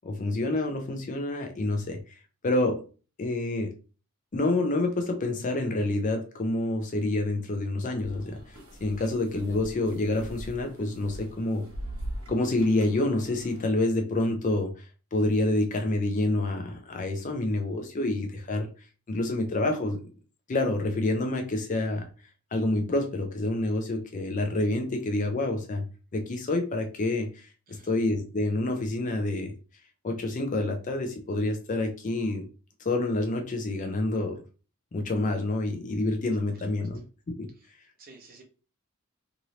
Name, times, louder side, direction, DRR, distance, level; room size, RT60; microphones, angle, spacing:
voice 1, 0.0-2.8 3.2-3.7 4.3-11.7 12.3-18.7 19.1-20.0 20.5-22.1 22.5-25.9 26.1-27.5 27.8-29.5 30.0-32.5 32.8-34.4 34.9-37.5, left 2 dB, 35° left, 4 dB, 0.4 m, -28 dB
sound 1, 8.0-13.7, right 1 dB, 80° right, 1.2 m, -42 dB
voice 2, 36.5-36.9 37.5-37.7 38.0-38.4, right 3 dB, 40° right, 2 dB, 0.7 m, -53 dB
2.8 x 2.6 x 3.0 m, 0.35 s
head